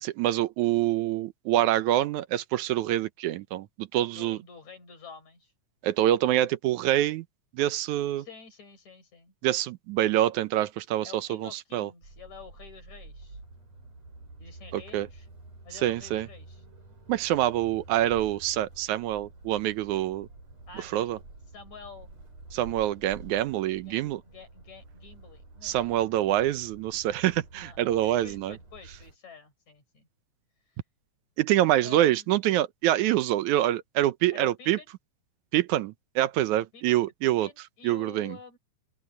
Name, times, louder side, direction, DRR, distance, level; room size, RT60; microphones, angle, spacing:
voice 1, 0.0-4.4 5.8-7.2 7.5-8.3 9.4-11.9 14.7-15.1 15.8-16.3 17.1-20.3 20.9-21.2 22.5-24.2 25.6-28.5 31.4-34.8 35.5-37.5 37.8-38.4, right 13 dB, 80° right, 2.2 m, -26 dB
voice 2, 4.1-5.5 8.2-9.3 11.0-13.4 14.4-15.3 15.6-16.6 20.7-21.2 21.5-22.1 23.2-23.4 23.8-26.1 27.5-30.1 31.8-32.3 34.3-34.9 36.7-38.6, left 6 dB, 65° left, 7.0 m, -49 dB
sound 1, 12.0-29.2, right 2 dB, 60° right, 9.3 m, -49 dB
open air
omnidirectional pair, 3.4 m